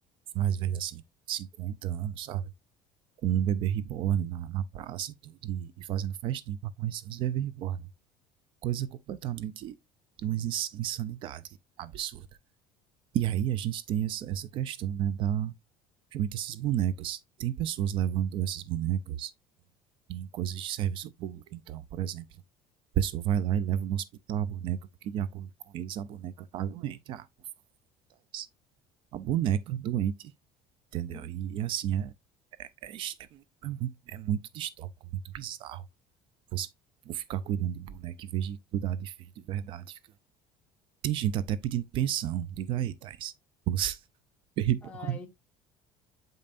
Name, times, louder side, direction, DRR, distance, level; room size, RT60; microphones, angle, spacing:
voice 1, 0.3-1.0 1.3-2.4 3.2-7.9 8.6-9.8 10.2-12.3 13.1-15.5 16.1-19.3 20.1-22.3 22.9-27.3 28.3-28.5 29.1-30.3 30.9-32.1 32.6-34.9 35.2-35.8 36.5-36.7 37.1-40.0 41.0-43.3 43.7-44.0 44.6-45.2, right 10 dB, 40° right, 0.4 m, -31 dB
voice 2, 31.1-31.7 44.8-45.3, left 5 dB, 10° left, 1.2 m, -46 dB
7.7 x 5.4 x 2.4 m
cardioid pair, 175°, 13 cm